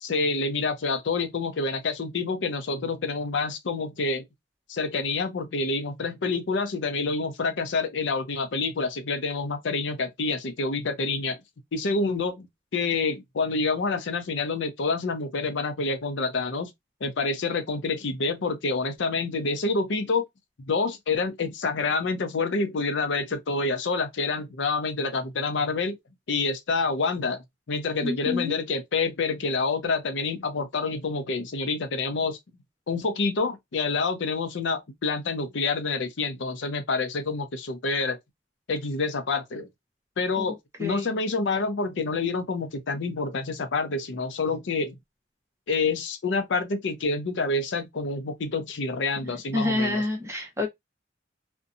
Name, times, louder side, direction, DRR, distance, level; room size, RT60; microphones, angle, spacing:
voice 1, 0.0-4.2 4.7-11.4 11.7-12.5 12.7-16.7 17.0-20.3 20.7-26.0 26.3-27.4 27.7-32.4 32.9-38.2 38.7-39.7 40.2-45.0 45.7-50.0, left 4 dB, 75° left, 0.5 m, -27 dB
voice 2, 28.0-28.5 40.4-40.5 40.8-41.1 49.3-50.7, left 2 dB, 15° right, 0.7 m, -28 dB
2.6 x 2.2 x 2.5 m
head